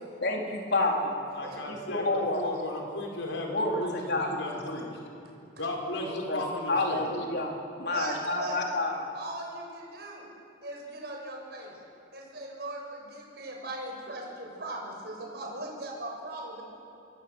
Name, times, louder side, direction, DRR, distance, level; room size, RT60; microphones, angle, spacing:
voice 1, 0.2-1.1 1.6-2.4 3.5-3.8 4.1-4.3 6.3-6.4 6.7-7.5 7.8-9.0, left 2 dB, 60° left, 0 dB, 4.0 m, -28 dB
voice 2, 1.3-4.9 5.6-7.2, left 1 dB, 85° left, 0 dB, 5.4 m, -35 dB
voice 3, 7.9-8.6 9.1-10.3 10.6-11.7 12.1-16.6, right 1 dB, 60° right, -1 dB, 7.1 m, -39 dB
27.5 x 22.5 x 8.1 m, 2.6 s
head